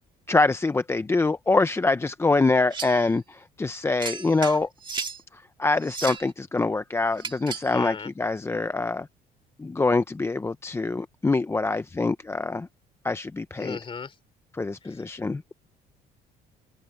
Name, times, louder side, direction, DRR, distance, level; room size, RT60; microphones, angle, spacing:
voice 1, 0.3-4.7 5.3-9.1 9.6-12.7 13.0-13.8 14.5-15.5, left 3 dB, 15° left, 0.6 m, -25 dB
sound 1, 2.7-3.0 4.0-5.2 5.8-6.3 7.2-7.7, right 5 dB, 30° right, 1.9 m, -34 dB
voice 2, 7.7-8.1 13.6-14.1, left 5 dB, 30° left, 4.0 m, -35 dB
open air
cardioid pair, 110°, 17 cm